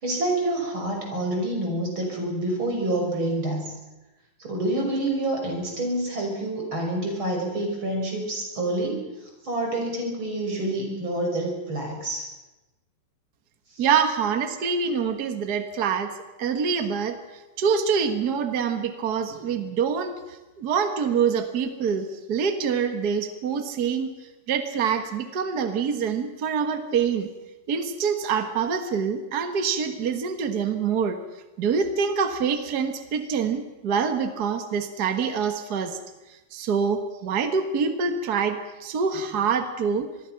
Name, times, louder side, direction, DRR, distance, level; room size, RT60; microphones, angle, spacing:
voice 1, 0.0-3.7 4.4-9.1 9.4-12.3, right 1 dB, 35° right, 1 dB, 6.6 m, -27 dB
voice 2, 13.8-16.1 16.4-17.2 17.6-20.1 20.6-24.1 24.5-27.3 27.7-31.2 31.6-36.0 36.3-40.1, right 6 dB, 65° right, 7 dB, 0.9 m, -25 dB
25.5 x 21.0 x 5.9 m, 1.1 s
omnidirectional pair, 4.0 m